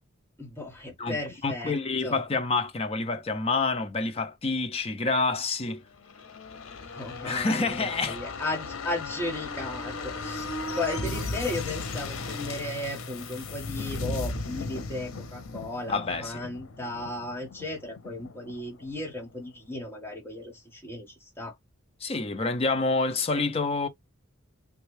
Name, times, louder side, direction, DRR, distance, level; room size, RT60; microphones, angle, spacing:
voice 1, 0.4-1.7 2.0-2.2 6.8-10.5 10.7-21.5, left 2 dB, 10° left, 1.6 m, -35 dB
voice 2, 1.4-5.8 7.2-8.2 15.9-16.6 22.0-23.9, left 3 dB, 30° left, 0.5 m, -28 dB
sound 1, 6.0-19.5 19.8-19.9, left 3 dB, 85° left, 0.7 m, -36 dB
3.2 x 2.3 x 3.1 m
head